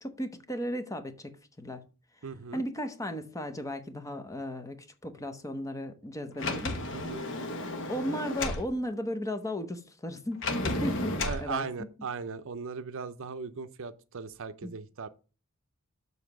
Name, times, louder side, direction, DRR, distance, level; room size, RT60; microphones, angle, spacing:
voice 1, 0.0-1.8 2.5-6.8 7.9-11.7 14.6-14.7, equal, 15° left, 0.8 m, -35 dB
voice 2, 2.2-2.6 6.7-7.2 11.2-15.1, right 5 dB, 60° right, 0.6 m, -38 dB
Sliding door, 6.4-8.7 10.4-11.5, left 2 dB, 55° left, 1.2 m, -32 dB
7.2 x 4.0 x 5.9 m
head